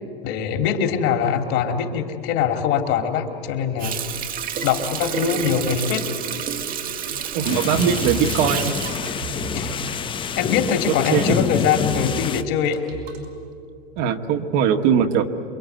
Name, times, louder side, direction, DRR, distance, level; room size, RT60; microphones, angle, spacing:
voice 1, 0.2-4.0 4.6-6.1 9.5-9.8 10.4-12.8, left 8 dB, 45° left, 6 dB, 2.9 m, -22 dB
Water tap faucet, 3.8-10.2 10.6-10.7, right 8 dB, 30° right, 1.4 m, -29 dB
sound 1, 7.1-13.3, right 4 dB, 85° right, 5.2 m, -36 dB
voice 2, 7.3-8.7 10.9-11.4 14.0-15.3, right 8 dB, 50° right, 5 dB, 1.7 m, -20 dB
sound 2, 7.4-12.4, left 7 dB, 15° left, 0.6 m, -27 dB
27.5 x 22.5 x 9.5 m, 2.4 s
hypercardioid pair, 120°, 30 cm